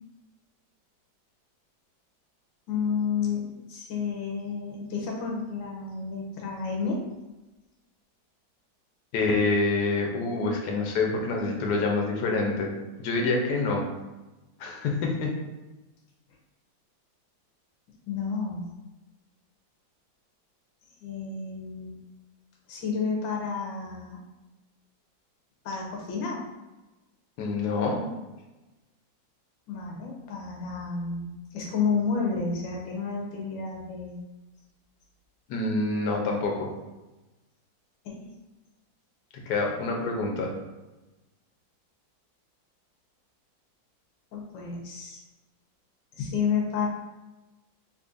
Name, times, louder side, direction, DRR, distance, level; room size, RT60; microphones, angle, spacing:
voice 1, 2.7-7.0 18.1-18.7 21.0-22.0 22.7-24.2 25.6-26.4 29.7-34.2 38.0-38.3 44.3-45.2 46.1-46.9, left 5 dB, 85° left, -1 dB, 1.4 m, -31 dB
voice 2, 9.1-12.7 13.0-13.8 14.6-15.3 27.4-28.0 35.5-36.7 39.5-40.5, left 3 dB, 65° left, 0 dB, 1.1 m, -26 dB
3.7 x 2.9 x 2.5 m, 1.1 s
omnidirectional pair, 2.1 m